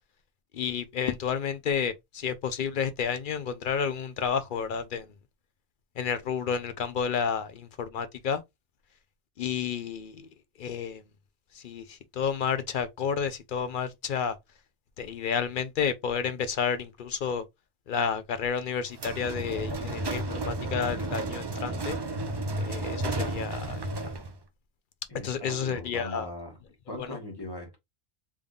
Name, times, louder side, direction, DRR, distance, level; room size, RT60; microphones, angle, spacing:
voice 1, 0.5-5.1 6.0-8.4 9.4-10.3 10.6-11.0 11.5-14.4 15.0-17.4 17.9-22.0 22.6-23.8 25.2-26.3 26.9-27.1, left 7 dB, 60° left, 0.6 m, -31 dB
sound 1, 18.9-24.4, right 2 dB, 40° right, 0.3 m, -32 dB
voice 2, 25.1-26.6 26.9-27.8, left 1 dB, 20° left, 1.3 m, -40 dB
3.5 x 3.5 x 2.4 m
omnidirectional pair, 1.2 m